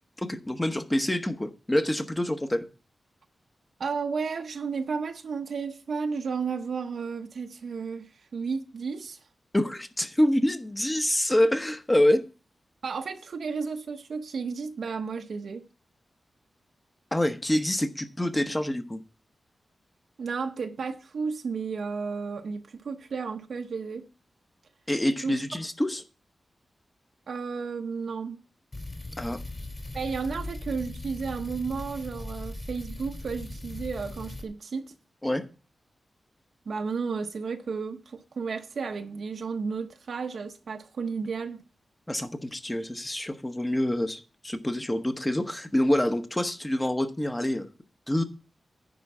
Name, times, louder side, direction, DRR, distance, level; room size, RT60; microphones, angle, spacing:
voice 1, 0.2-2.7 9.5-12.2 17.1-19.0 24.9-26.0 29.2-29.4 35.2-35.4 42.1-47.7 48.1-48.2, left 1 dB, 15° left, 1.0 m, -26 dB
voice 2, 3.8-9.2 12.8-15.6 20.2-24.0 25.2-25.4 27.3-28.4 29.9-34.9 36.7-41.6, right 5 dB, 75° right, 0.8 m, -33 dB
sound 1, 28.7-34.5, left 2 dB, 35° left, 2.7 m, -39 dB
10.5 x 4.6 x 7.2 m
wide cardioid pair, 110°, 0 cm